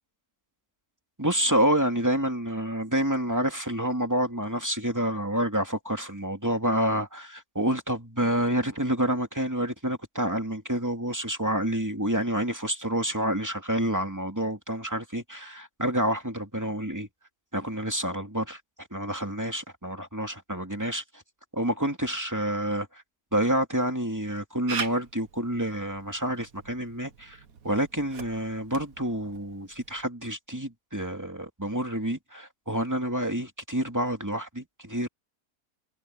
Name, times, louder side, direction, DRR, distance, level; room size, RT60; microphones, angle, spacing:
voice 1, 1.2-17.1 17.5-21.2 21.6-23.0 23.3-27.4 27.6-35.1, right 1 dB, 10° right, 2.5 m, -28 dB
Camera, 24.7-30.1, right 5 dB, 60° right, 2.0 m, -41 dB
omnidirectional pair, 1.7 m